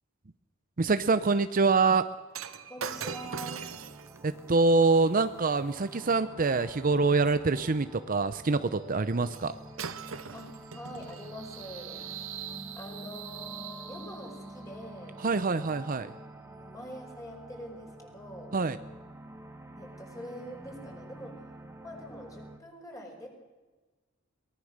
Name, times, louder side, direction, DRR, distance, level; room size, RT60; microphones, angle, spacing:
voice 1, 0.8-2.1 4.2-9.6 15.2-16.1 18.5-18.8, right 3 dB, 45° right, 12 dB, 0.7 m, -25 dB
Shatter, 2.3-6.7 9.3-9.5 9.8-11.3 12.0-12.2, right 6 dB, 90° right, 1.0 m, -42 dB
voice 2, 2.7-3.7 10.3-12.1 12.7-15.2 16.5-18.5 19.8-21.4 21.8-23.3, equal, 15° left, 1 dB, 4.9 m, -44 dB
sound 1, 2.9-22.6, right 1 dB, 15° right, 1.5 m, -48 dB
sound 2, 8.8-14.7, right 11 dB, 70° right, 1.4 m, -46 dB
23.0 x 18.5 x 6.5 m, 1.3 s
head